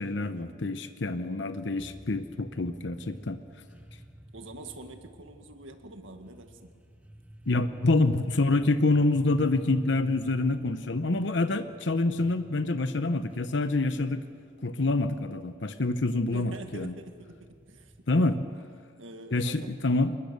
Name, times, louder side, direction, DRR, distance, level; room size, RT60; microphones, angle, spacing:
voice 1, 0.0-3.4 7.5-14.2 14.6-16.9 18.1-18.5 19.3-20.2, left 2 dB, 65° left, 10 dB, 0.9 m, -27 dB
sound 1, 1.8-18.6, right 1 dB, 10° right, 1.5 m, -51 dB
voice 2, 4.3-6.8 16.3-18.1 19.0-19.7, right 2 dB, 80° right, 6 dB, 1.9 m, -45 dB
25.5 x 21.5 x 6.8 m, 2.2 s
head